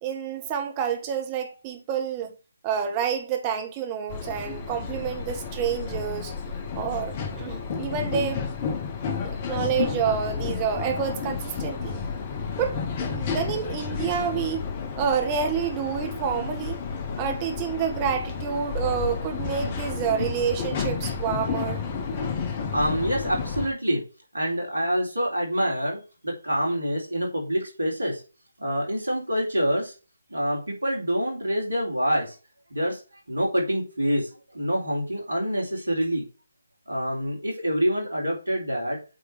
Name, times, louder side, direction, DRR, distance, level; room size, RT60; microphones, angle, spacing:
voice 1, 0.0-2.4 2.6-6.3 6.7-8.4 9.2-12.0 12.6-14.7 15.0-16.8 17.2-21.8, right 7 dB, 20° right, 1.3 m, -28 dB
sound 1, 4.1-23.7, left 5 dB, 25° left, 1.1 m, -31 dB
voice 2, 22.7-24.0 24.3-28.2 28.6-29.9 30.3-32.4 32.7-33.0 33.3-36.2 36.9-39.0, equal, 70° right, 3.7 m, -26 dB
8.8 x 3.7 x 4.8 m
figure-of-eight pair, 145°, 0 cm